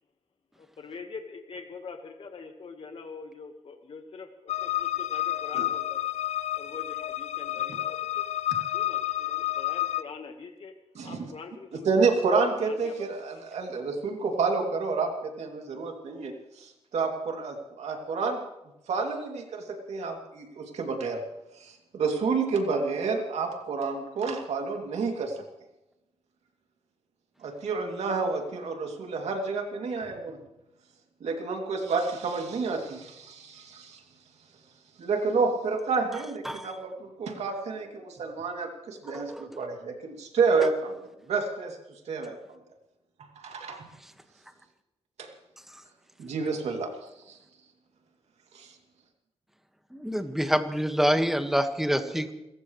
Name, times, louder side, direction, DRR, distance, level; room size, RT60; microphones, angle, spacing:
voice 1, 0.6-6.0 6.5-8.2 8.7-10.7 11.0-12.2 12.6-12.9, left 4 dB, 60° left, 4 dB, 1.5 m, -44 dB
sound 1, 4.5-10.0, left 14 dB, 85° left, 0.5 m, -30 dB
voice 2, 10.9-11.3 11.8-18.4 18.9-21.2 21.5-25.4 27.4-30.4 31.2-34.0 35.0-40.9 41.3-41.8 42.1-42.4 43.4-43.9 45.2-45.3 46.2-46.9 47.3-47.4 48.5-48.7, right 4 dB, 85° right, 2 dB, 2.8 m, -29 dB
voice 3, 49.9-52.3, equal, 5° right, 7 dB, 1.7 m, -26 dB
29.5 x 15.0 x 3.3 m, 0.91 s
cardioid pair, 85°, 11 cm